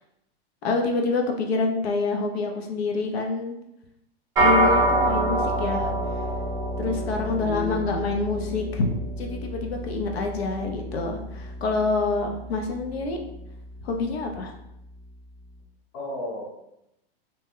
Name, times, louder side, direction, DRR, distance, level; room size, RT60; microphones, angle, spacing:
voice 1, 0.6-3.6 4.4-5.9 6.8-13.2 13.8-14.5, left 3 dB, 75° left, 3 dB, 0.7 m, -27 dB
sound 1, 4.4-13.9, right 1 dB, 10° right, 0.6 m, -27 dB
voice 2, 7.4-8.0 15.9-16.5, left 2 dB, 40° left, -5 dB, 0.9 m, -32 dB
2.8 x 2.1 x 3.5 m, 0.84 s
supercardioid pair, 165°, 31 cm